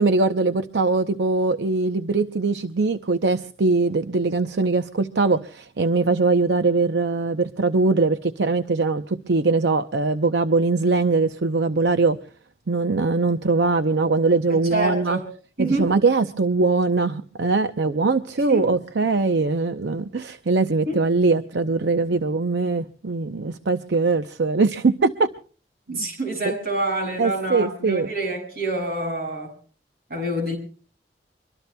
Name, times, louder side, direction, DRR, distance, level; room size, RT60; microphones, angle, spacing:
voice 1, 0.0-12.2 12.7-15.2 15.6-25.3 25.9-26.1 27.2-28.1, right 3 dB, 80° right, 10 dB, 0.6 m, -21 dB
voice 2, 14.5-15.3 15.6-15.9 18.5-18.6 20.9-21.0 25.9-29.5 30.1-30.5, right 2 dB, 60° right, 3 dB, 6.7 m, -27 dB
24.5 x 23.5 x 2.2 m, 0.41 s
head